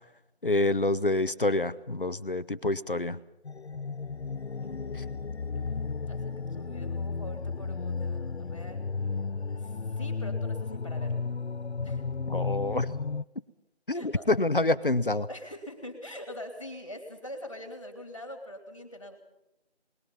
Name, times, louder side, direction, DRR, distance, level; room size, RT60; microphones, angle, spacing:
voice 1, 0.4-3.2 12.3-12.9 13.9-15.3, left 2 dB, 55° left, 14 dB, 1.1 m, -27 dB
sound 1, 3.4-13.2, left 4 dB, 75° left, 0.7 m, -33 dB
voice 2, 4.6-5.2 6.1-8.8 9.2-11.2 11.8-12.0 13.9-14.6 15.3-19.2, left 1 dB, 30° left, 6 dB, 3.0 m, -44 dB
26.5 x 20.5 x 5.6 m, 0.87 s
figure-of-eight pair, 175°, 33 cm